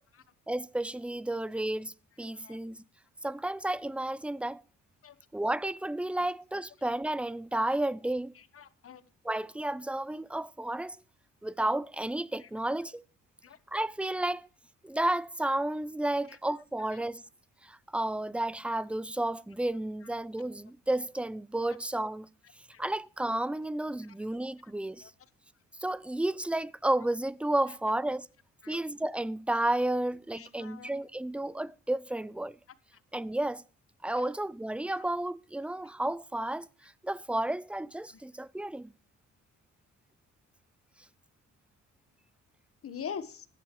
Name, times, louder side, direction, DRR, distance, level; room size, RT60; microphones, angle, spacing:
voice 1, 0.5-2.8 3.2-4.6 5.3-8.3 9.2-11.0 11.4-13.0 13.7-14.5 14.8-17.2 17.6-22.3 22.8-25.1 25.8-28.3 28.7-32.6 33.1-33.6 34.0-36.7 37.0-38.9, right 1 dB, 5° right, 0.5 m, -32 dB
voice 2, 8.5-9.0 12.4-12.5 13.4-13.6 16.3-16.4 21.7-21.8 25.0-25.1 28.6-28.8 30.3-30.9 34.2-34.3 34.9-35.1 38.1-38.2 42.8-43.5, left 7 dB, 50° left, 1.3 m, -43 dB
15.0 x 11.5 x 3.1 m
cardioid pair, 90°, 30 cm